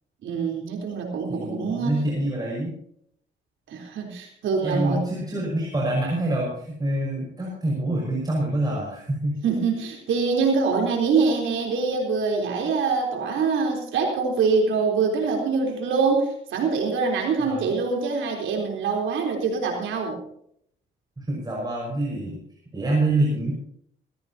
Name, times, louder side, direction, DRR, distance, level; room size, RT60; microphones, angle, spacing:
voice 1, 0.2-1.9 3.7-5.0 9.4-20.2, right 4 dB, 75° right, 1 dB, 3.8 m, -24 dB
voice 2, 1.3-2.7 4.6-9.3 17.4-17.6 21.2-22.4 22.7-23.5, right 1 dB, 20° right, -2 dB, 5.6 m, -26 dB
18.5 x 16.0 x 2.9 m, 0.68 s
cardioid pair, 90°, 20 cm